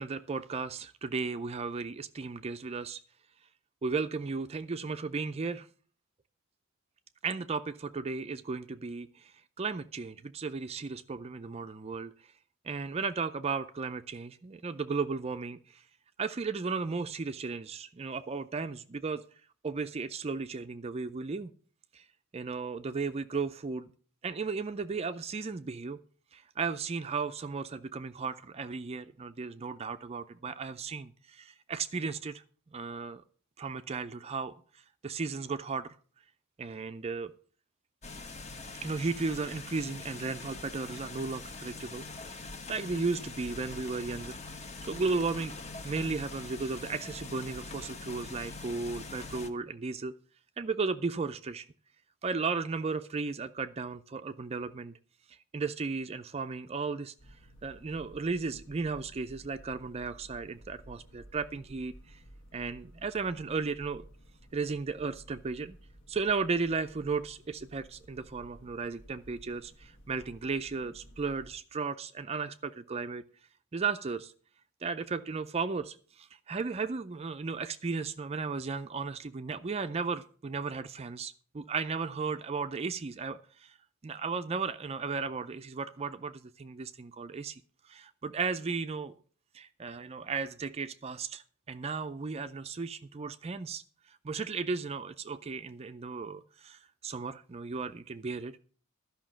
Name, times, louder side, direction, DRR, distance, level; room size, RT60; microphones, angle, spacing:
voice 1, 0.0-3.0 3.8-5.7 7.2-12.1 12.6-15.8 16.2-19.2 19.6-21.5 21.9-22.1 22.3-23.9 24.2-26.0 26.3-32.4 32.7-33.2 33.6-35.9 36.6-37.3 38.8-42.4 42.7-45.5 45.8-50.1 50.6-51.7 52.2-55.0 55.3-57.1 57.6-62.2 62.5-64.1 64.5-65.8 66.1-73.2 73.7-74.3 74.8-83.7 84.0-89.1 89.5-93.8 94.1-98.6, right 4 dB, 30° right, 10 dB, 0.4 m, -35 dB
sound 1, 38.0-49.5, left 3 dB, 30° left, 1.0 m, -43 dB
sound 2, 57.2-71.6, equal, 60° left, 1.5 m, -54 dB
12.5 x 5.7 x 7.3 m, 0.42 s
head